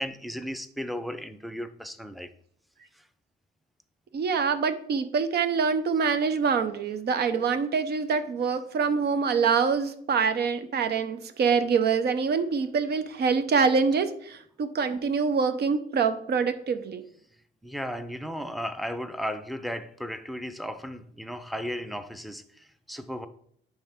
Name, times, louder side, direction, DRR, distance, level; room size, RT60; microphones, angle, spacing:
voice 1, 0.0-2.3 3.0-3.1 17.6-23.3, equal, ahead, 9 dB, 0.6 m, -35 dB
voice 2, 4.1-17.0, right 5 dB, 55° right, 10 dB, 0.7 m, -25 dB
9.8 x 3.4 x 3.6 m, 0.65 s
cardioid pair, 90°, 20 cm